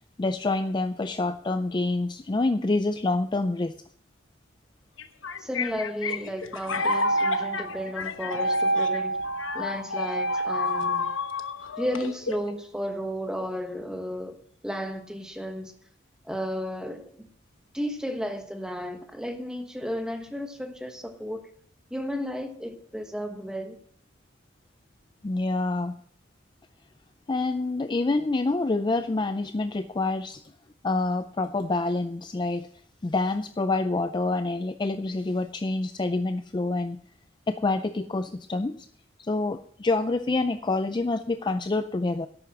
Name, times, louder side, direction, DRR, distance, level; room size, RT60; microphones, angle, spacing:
voice 1, 0.2-3.8 25.2-26.0 27.3-30.4 30.8-32.7 33.0-37.0 37.5-38.9 39.2-42.3, left 2 dB, 25° left, 10 dB, 0.4 m, -27 dB
sound 1, 5.0-12.5, left 1 dB, 85° left, 1.0 m, -28 dB
voice 2, 5.4-9.2 9.5-11.1 11.8-14.4 14.6-15.7 16.2-17.3 17.7-21.4 21.9-23.8, equal, 5° right, 6 dB, 1.2 m, -33 dB
11.0 x 8.8 x 5.9 m, 0.63 s
head